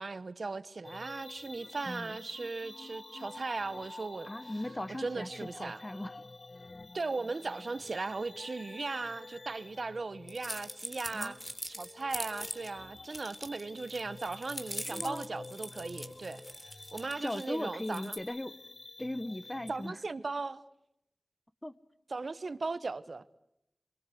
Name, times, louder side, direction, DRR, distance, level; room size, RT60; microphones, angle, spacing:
voice 1, 0.0-4.3 5.0-5.8 6.9-11.4 11.7-16.4 16.9-18.2 19.7-20.6 22.1-23.2, right 3 dB, 70° right, 1.1 m, -37 dB
sound 1, 0.8-19.9, left 3 dB, 60° left, 1.2 m, -49 dB
voice 2, 1.9-2.2 4.3-5.3 5.6-6.2 11.1-11.3 14.8-15.2 17.2-18.5 19.0-20.0 21.6-21.7, left 1 dB, 25° left, 1.4 m, -38 dB
sound 2, 10.3-12.7 13.0-17.4 17.8-18.2, equal, 5° left, 3.5 m, -42 dB
29.0 x 23.5 x 7.9 m
wide cardioid pair, 45°, 0 cm